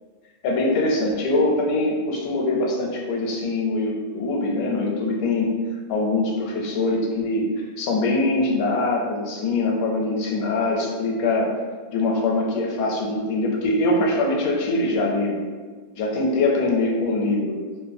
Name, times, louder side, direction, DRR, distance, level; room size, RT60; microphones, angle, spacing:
voice 1, 0.4-5.5 5.9-7.5 7.8-11.5 11.9-15.4 16.0-17.6, left 2 dB, 75° left, -1 dB, 1.0 m, -23 dB
2.8 x 2.2 x 2.5 m, 1.4 s
omnidirectional pair, 1.5 m